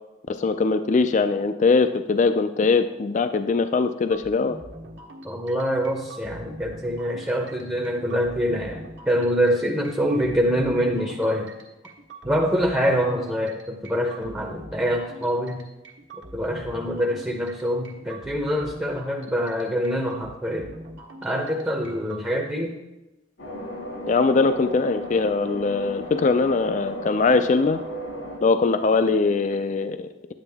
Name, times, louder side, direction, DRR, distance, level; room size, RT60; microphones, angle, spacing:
voice 1, 0.3-4.6 24.1-27.8 28.4-30.3, left 4 dB, 40° left, 10 dB, 0.4 m, -21 dB
sound 1, 4.1-22.2, right 1 dB, 70° right, 1.4 m, -43 dB
voice 2, 5.2-11.5 12.2-15.7 16.3-20.8 21.2-22.8, equal, 10° right, 2 dB, 0.7 m, -25 dB
sound 2, 23.4-28.4, equal, 85° left, 2.2 m, -35 dB
9.8 x 8.8 x 3.4 m, 1.0 s
head